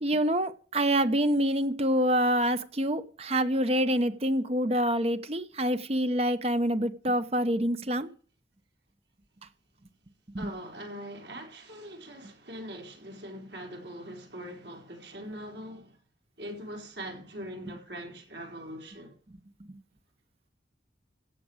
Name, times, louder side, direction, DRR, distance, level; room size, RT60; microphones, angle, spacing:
voice 1, 0.0-8.1 10.3-10.5, equal, 35° right, 0.9 m, -26 dB
voice 2, 10.4-16.0 16.4-19.1, equal, 70° right, 4.4 m, -42 dB
16.5 x 7.5 x 6.4 m
head